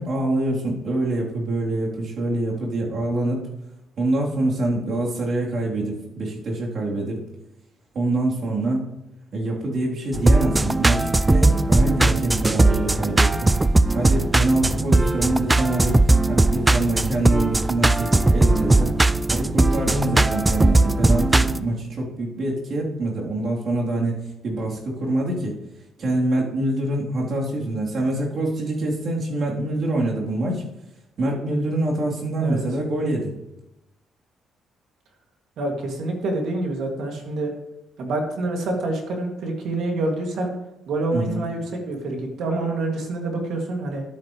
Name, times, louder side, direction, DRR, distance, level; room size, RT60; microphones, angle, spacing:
voice 1, 0.0-3.4 4.0-7.2 7.9-8.8 9.3-13.5 13.9-16.0 16.3-19.0 19.3-25.5 26.0-30.6 31.2-33.3 41.1-41.4, right 1 dB, 55° right, -3 dB, 3.5 m, -25 dB
sound 1, 10.1-21.6, right 2 dB, 15° right, 0.4 m, -19 dB
voice 2, 35.6-37.5 38.0-40.5 40.9-44.0, right 2 dB, 75° right, 2 dB, 2.5 m, -27 dB
11.5 x 10.0 x 3.2 m, 0.91 s
cardioid pair, 90°, 0 cm